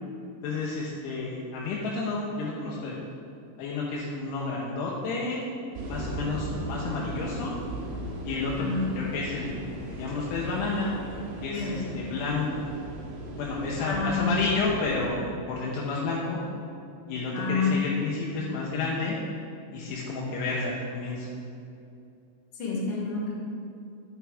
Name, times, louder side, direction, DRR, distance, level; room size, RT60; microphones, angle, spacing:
voice 1, 0.4-3.0 3.6-5.4 5.9-7.6 8.2-8.7 9.0-10.9 11.4-12.7 13.4-16.4 17.1-19.2 19.7-21.3, left 3 dB, 80° left, -4 dB, 2.9 m, -31 dB
sound 1, 5.7-15.1, right 1 dB, 85° right, 3.6 m, -38 dB
voice 2, 11.4-11.9 13.8-14.5 17.3-17.9 22.5-23.3, left 4 dB, 50° left, -4 dB, 3.3 m, -29 dB
11.5 x 9.3 x 3.5 m, 2.6 s
omnidirectional pair, 4.9 m